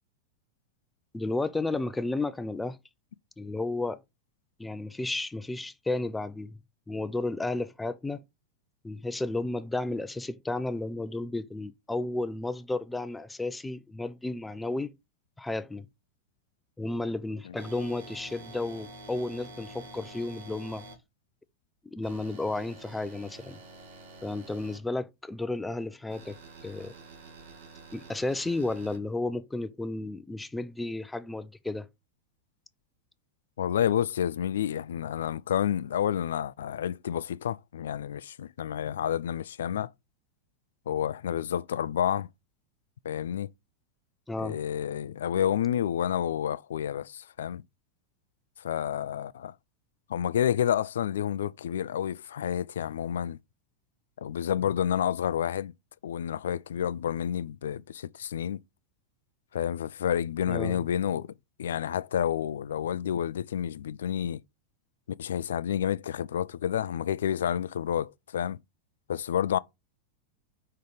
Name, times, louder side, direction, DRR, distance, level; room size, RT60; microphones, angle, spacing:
voice 1, 1.1-2.8 3.4-4.0 4.6-6.6 6.9-8.2 8.8-14.9 15.4-15.9 16.8-20.8 21.9-23.6 24.2-26.9 27.9-31.9 44.3-44.6 60.5-60.8, left 2 dB, 10° left, 0.5 m, -33 dB
sound 1, 17.6-20.9 22.0-24.8 26.1-29.0, right 2 dB, 55° right, 2.2 m, -48 dB
voice 2, 33.6-39.9 40.9-42.3 43.0-43.5 44.4-47.6 48.6-49.5 50.1-53.4 54.2-55.7 56.0-58.6 59.5-61.3 61.6-64.4 65.2-68.6 69.1-69.6, left 9 dB, 65° left, 0.3 m, -29 dB
5.3 x 3.9 x 5.0 m
figure-of-eight pair, 90°, 0 cm